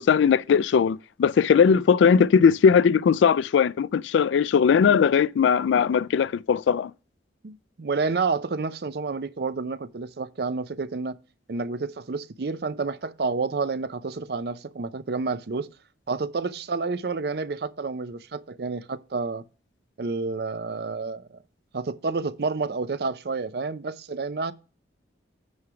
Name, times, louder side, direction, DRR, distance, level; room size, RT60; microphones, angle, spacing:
voice 1, 0.0-6.9, left 6 dB, 80° left, 0.3 m, -19 dB
voice 2, 7.4-11.2 11.5-15.7 16.1-19.4 20.0-21.4 21.7-24.5, right 4 dB, 55° right, 0.5 m, -29 dB
9.5 x 3.2 x 5.7 m
head